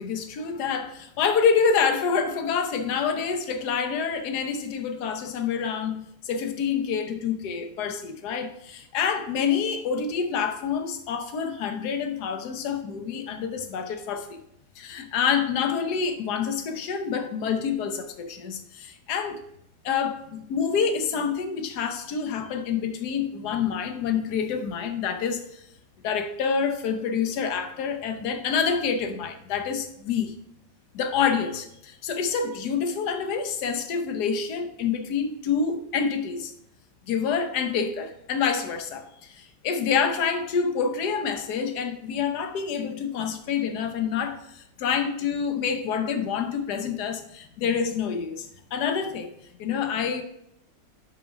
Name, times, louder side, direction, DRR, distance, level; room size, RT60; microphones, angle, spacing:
voice 1, 0.0-14.4 14.8-19.4 19.8-25.6 26.0-30.3 30.9-36.5 37.1-49.3 49.6-50.2, left 6 dB, 65° left, 1.4 m, -27 dB
6.3 x 6.3 x 5.2 m
omnidirectional pair, 2.0 m